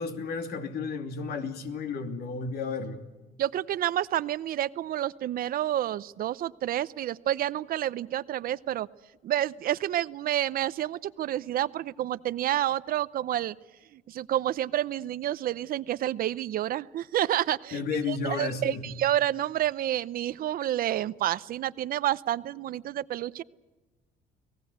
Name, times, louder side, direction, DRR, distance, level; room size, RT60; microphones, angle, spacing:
voice 1, 0.0-3.0 17.7-18.8, left 4 dB, 70° left, 5 dB, 2.9 m, -32 dB
voice 2, 3.4-8.9 9.2-13.6 13.9-17.8 18.1-23.4, right 12 dB, 60° right, 17 dB, 0.7 m, -29 dB
30.0 x 18.5 x 8.0 m, 1.2 s
cardioid pair, 110°, 17 cm